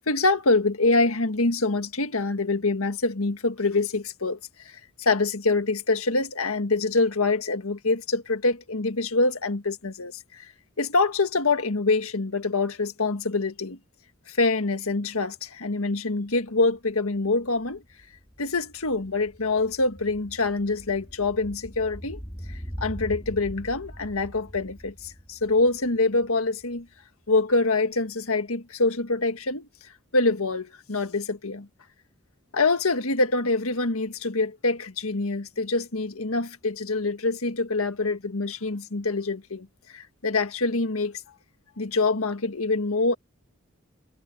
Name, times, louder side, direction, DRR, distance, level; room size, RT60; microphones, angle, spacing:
voice 1, 0.1-10.5 10.8-13.8 14.3-17.8 18.4-22.2 22.5-26.9 27.3-29.7 30.1-31.7 32.5-39.7 39.9-41.2 41.8-43.2, left 3 dB, 90° left, 1.7 m, -25 dB
sound 1, 16.3-16.4 16.7-27.0 27.3-27.4, equal, 10° left, 4.6 m, -42 dB
head